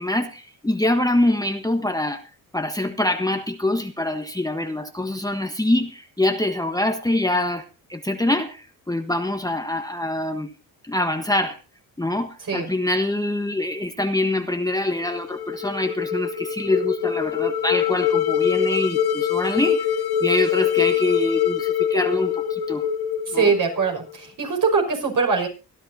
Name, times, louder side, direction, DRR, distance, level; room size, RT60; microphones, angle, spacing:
voice 1, 0.0-2.2 2.5-7.6 7.9-10.5 10.8-11.6 12.0-19.9 20.2-22.8 23.3-23.5, left 1 dB, 10° left, 6 dB, 1.2 m, -24 dB
voice 2, 12.4-12.7 23.3-25.5, right 5 dB, 55° right, 2 dB, 5.9 m, -22 dB
sound 1, 14.9-24.1, left 9 dB, 70° left, 1.0 m, -24 dB
24.5 x 11.0 x 2.7 m, 0.29 s
cardioid pair, 85°, 39 cm